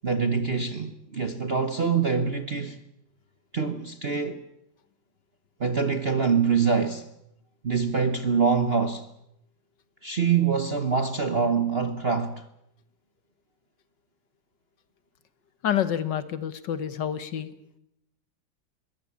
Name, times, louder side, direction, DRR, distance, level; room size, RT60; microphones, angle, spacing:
voice 1, 0.0-2.8 3.5-4.4 5.6-7.1 7.6-9.1 10.0-12.4, right 5 dB, 40° right, 0.9 m, -25 dB
voice 2, 15.6-17.5, left 9 dB, 60° left, 1.7 m, -28 dB
21.5 x 17.5 x 8.5 m
omnidirectional pair, 2.2 m